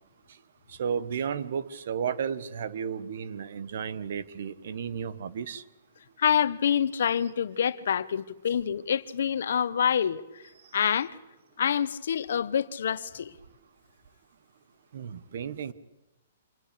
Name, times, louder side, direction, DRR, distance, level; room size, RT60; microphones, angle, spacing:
voice 1, 0.7-5.6 14.9-15.7, right 7 dB, 50° right, 1.2 m, -33 dB
voice 2, 6.2-10.4 10.7-11.1 11.6-13.3, left 8 dB, 60° left, 1.1 m, -26 dB
26.5 x 20.5 x 8.4 m
hypercardioid pair, 180°, 0 cm